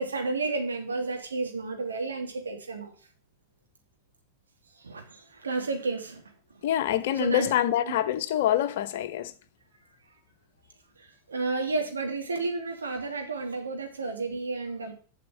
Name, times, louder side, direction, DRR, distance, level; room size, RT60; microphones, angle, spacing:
voice 1, 0.0-2.9 4.8-6.2 7.1-7.5 7.8-7.9 11.3-14.9, right 3 dB, 75° right, 2.6 m, -31 dB
voice 2, 6.6-9.3, left 12 dB, 55° left, 0.9 m, -26 dB
7.6 x 6.7 x 7.5 m
figure-of-eight pair, 90°, 0 cm